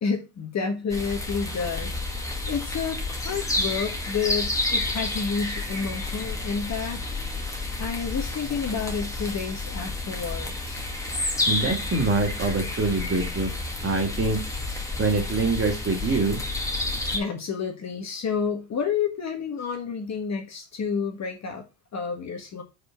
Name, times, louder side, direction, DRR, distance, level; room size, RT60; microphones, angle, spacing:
voice 1, 0.0-7.0 7.8-10.9 17.0-21.7 21.9-22.6, left 6 dB, 35° left, 1.4 m, -30 dB
sound 1, 0.9-17.2, left 2 dB, 5° left, 1.8 m, -30 dB
voice 2, 11.5-13.5 13.8-14.4 15.0-16.4, right 3 dB, 25° right, 2.5 m, -24 dB
5.2 x 4.3 x 6.0 m
supercardioid pair, 115°, 49 cm